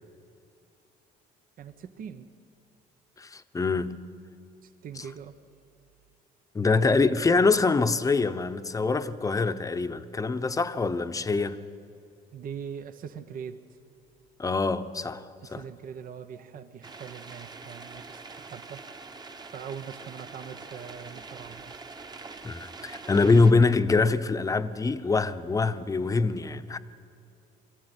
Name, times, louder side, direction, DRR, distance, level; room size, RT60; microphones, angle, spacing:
voice 1, 1.6-2.3 4.6-5.4 12.3-13.8 15.4-18.8 19.5-21.8, right 7 dB, 55° right, 1.2 m, -42 dB
voice 2, 3.2-3.9 6.5-11.6 14.4-15.6 22.4-26.8, left 3 dB, 20° left, 1.0 m, -24 dB
sound 1, 16.8-23.5, right 4 dB, 25° right, 1.4 m, -44 dB
24.0 x 15.0 x 9.9 m
cardioid pair, 110°, 17 cm